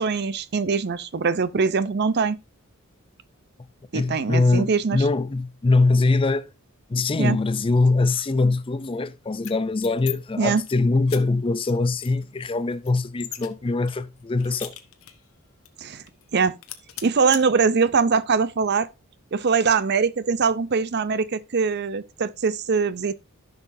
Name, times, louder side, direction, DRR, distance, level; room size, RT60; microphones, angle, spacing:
voice 1, 0.0-2.4 3.9-5.0 7.2-7.4 10.4-10.6 15.8-16.0 16.3-16.5 17.0-18.9 19.3-23.1, right 5 dB, 50° right, 0.6 m, -22 dB
voice 2, 3.9-6.5 6.9-14.7, left 3 dB, 25° left, 0.4 m, -22 dB
sound 1, 9.3-10.1 10.5-10.7 11.1-11.2 11.6-11.7 12.0-13.5 13.9-15.3 15.6-15.7 16.1-16.3 16.6-17.4, left 13 dB, 70° left, 1.1 m, -38 dB
14.0 x 6.0 x 2.6 m
head